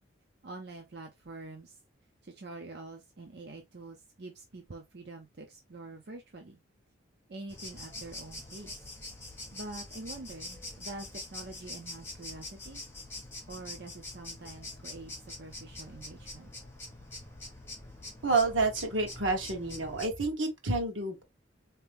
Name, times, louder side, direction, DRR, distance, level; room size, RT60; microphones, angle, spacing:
voice 1, 0.4-1.8 2.2-6.6 7.3-8.9 9.5-12.8 13.5-16.5, right 2 dB, 55° right, 0.6 m, -46 dB
sound 1, 7.5-20.1, left 2 dB, 10° left, 1.6 m, -45 dB
voice 2, 18.2-21.2, right 3 dB, 75° right, 1.2 m, -29 dB
3.9 x 2.9 x 3.5 m
head